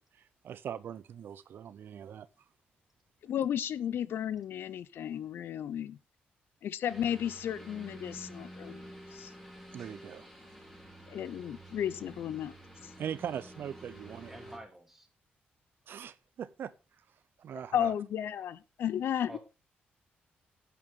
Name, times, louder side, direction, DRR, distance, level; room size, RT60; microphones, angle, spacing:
voice 1, 0.1-2.3 9.7-10.3 13.0-14.4 15.9-16.7 17.4-17.9, right 9 dB, 65° right, 0.5 m, -41 dB
voice 2, 3.2-6.0 6.6-8.8 9.1-9.3 11.1-12.5 12.8-12.9 17.7-19.4, left 9 dB, 75° left, 0.6 m, -33 dB
sound 1, 6.9-14.6, right 1 dB, 10° left, 4.4 m, -49 dB
voice 3, 14.3-15.1 19.3-19.4, right 1 dB, 5° right, 3.0 m, -48 dB
10.5 x 8.5 x 3.6 m
cardioid pair, 90°, 4 cm